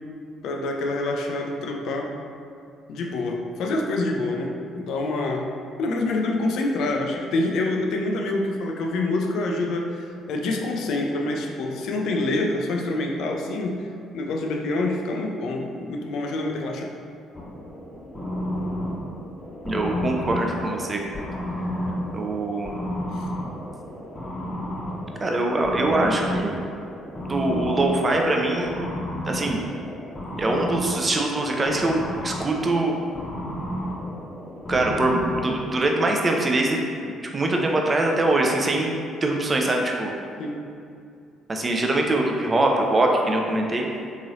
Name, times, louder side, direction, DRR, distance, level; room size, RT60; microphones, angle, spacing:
voice 1, 0.4-2.1 2.9-5.5 5.8-13.9 14.1-16.9 23.1-23.2 40.4-40.6, left 2 dB, 60° left, 2 dB, 0.4 m, -26 dB
sound 1, 17.3-35.7, left 1 dB, 25° left, 0.7 m, -32 dB
voice 2, 19.6-21.2 22.1-22.7 25.2-26.6 27.3-28.8 29.3-29.6 30.4-33.0 34.7-40.1 41.5-43.9, right 2 dB, 30° right, 1 dB, 0.5 m, -23 dB
3.6 x 3.0 x 2.6 m, 2.5 s
hypercardioid pair, 50°, 0 cm